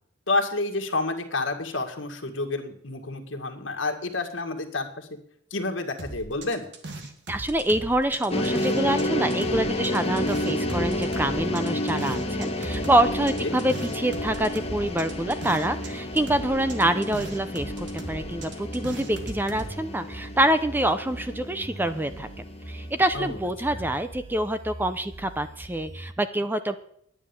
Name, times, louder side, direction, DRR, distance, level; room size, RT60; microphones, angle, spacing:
voice 1, 0.3-5.1 5.5-6.6 13.4-13.6 23.1-23.4 23.7-23.9, left 2 dB, 70° left, 4 dB, 2.0 m, -29 dB
sound 1, 6.0-9.0 9.3-15.9 16.2-19.7, right 2 dB, 65° right, 1.8 m, -39 dB
voice 2, 7.3-26.8, right 1 dB, 10° right, 10 dB, 0.7 m, -26 dB
sound 2, 8.3-23.3, left 1 dB, 30° left, 1.3 m, -31 dB
sound 3, 10.1-26.1, right 1 dB, 35° right, 1.0 m, -42 dB
10.0 x 10.0 x 7.1 m, 0.66 s
head